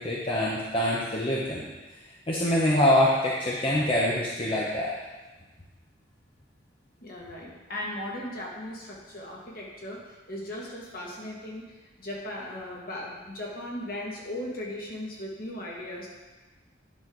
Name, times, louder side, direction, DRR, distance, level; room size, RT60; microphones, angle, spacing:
voice 1, 0.0-1.6 2.3-4.9, left 1 dB, 30° left, -5 dB, 0.9 m, -25 dB
voice 2, 7.0-16.1, left 1 dB, 50° left, -3 dB, 2.0 m, -37 dB
10.5 x 6.4 x 3.9 m, 1.2 s
head